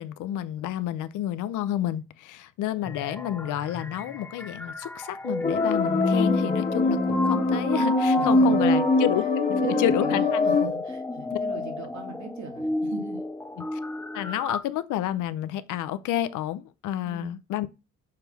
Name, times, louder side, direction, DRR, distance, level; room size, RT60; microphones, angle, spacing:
voice 1, 0.0-9.2 9.5-10.4 13.6-13.8 14.1-17.7, left 12 dB, 85° left, 0.7 m, -30 dB
sound 1, 2.8-14.6, left 2 dB, 5° left, 0.6 m, -30 dB
sound 2, 5.4-10.7, left 2 dB, 30° left, 1.7 m, -23 dB
voice 2, 8.2-8.9 9.6-13.2 17.0-17.4, right 4 dB, 70° right, 2.6 m, -38 dB
6.7 x 3.5 x 5.9 m
cardioid pair, 90°, 30 cm